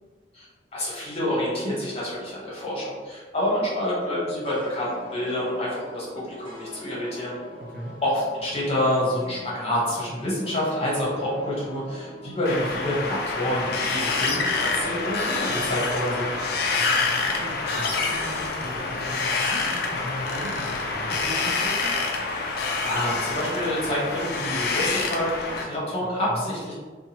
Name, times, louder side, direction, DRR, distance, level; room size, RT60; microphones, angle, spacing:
voice 1, 0.7-7.3 8.0-16.3 22.8-26.7, left 1 dB, 35° left, -7 dB, 1.0 m, -27 dB
sound 1, 4.4-13.8, equal, 10° left, 1.3 m, -44 dB
Wind, 12.5-25.6, left 4 dB, 60° left, 0.4 m, -27 dB
voice 2, 16.7-22.0 26.3-26.5, equal, 50° right, -2 dB, 0.5 m, -38 dB
2.7 x 2.3 x 2.8 m, 1.4 s
head